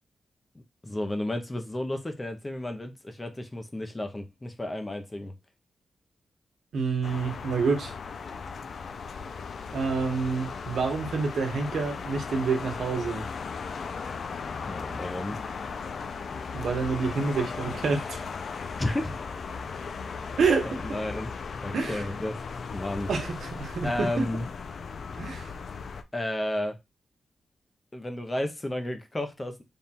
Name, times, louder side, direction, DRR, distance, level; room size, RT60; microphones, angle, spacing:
voice 1, 0.8-5.3 14.6-15.4 18.8-19.1 20.6-21.3 21.6-22.4 22.7-23.1 23.8-24.5 26.1-26.8 27.9-29.6, left 1 dB, 20° left, 0.6 m, -32 dB
voice 2, 6.7-7.9 9.7-13.2 16.5-18.2 20.4-20.8 21.7-22.2 23.1-24.3 25.2-25.6, right 4 dB, 80° right, 1.1 m, -28 dB
sound 1, 7.0-26.0, left 5 dB, 65° left, 0.4 m, -37 dB
3.6 x 2.3 x 4.1 m
wide cardioid pair, 115°, 0 cm